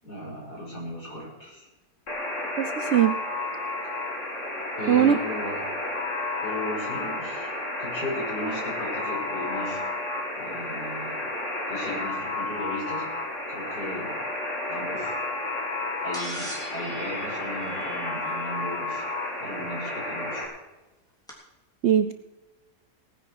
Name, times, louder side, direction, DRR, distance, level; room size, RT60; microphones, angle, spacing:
voice 1, 0.0-1.7 4.8-5.6 6.4-7.5 7.8-9.8 10.4-11.3 11.7-13.1 13.5-14.2 14.7-15.2 16.0-19.0 19.4-20.5, left 1 dB, 75° left, -3 dB, 6.2 m, -36 dB
Alarm, 2.1-20.5, left 2 dB, 50° left, 3.0 m, -31 dB
voice 2, 2.6-3.2 4.9-5.2 21.8-22.1, right 9 dB, 65° right, 10 dB, 0.7 m, -20 dB
sound 1, 16.1-18.4 20.0-20.1 21.3-21.4, right 1 dB, ahead, 3.3 m, -40 dB
18.5 x 10.0 x 4.7 m, 1.1 s
omnidirectional pair, 1.7 m